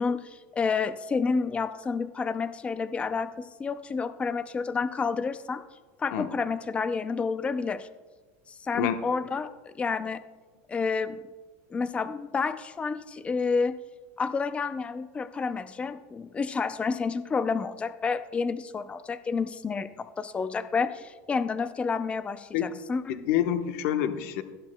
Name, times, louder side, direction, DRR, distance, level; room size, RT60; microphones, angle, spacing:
voice 1, 0.0-5.6 6.0-7.9 8.5-10.2 10.7-11.2 11.7-13.8 14.2-23.0, left 5 dB, 15° left, 12 dB, 0.4 m, -29 dB
voice 2, 23.1-24.4, left 10 dB, 70° left, 7 dB, 1.0 m, -27 dB
19.0 x 12.0 x 2.2 m, 1.3 s
supercardioid pair, 140°, 8 cm